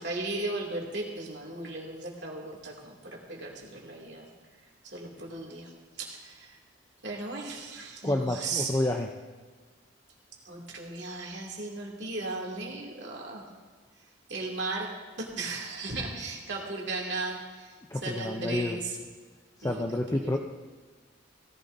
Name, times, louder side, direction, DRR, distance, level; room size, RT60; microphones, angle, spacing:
voice 1, 0.0-4.3 4.8-5.7 6.0-6.6 7.0-8.7 10.4-13.4 14.3-14.9 15.2-17.7 18.0-19.0 19.6-19.8 20.1-20.4, right 3 dB, 60° right, -2 dB, 2.5 m, -36 dB
voice 2, 8.0-9.1 17.9-18.8 19.6-20.4, left 1 dB, 15° left, 2 dB, 0.5 m, -29 dB
17.5 x 15.0 x 2.7 m, 1.4 s
head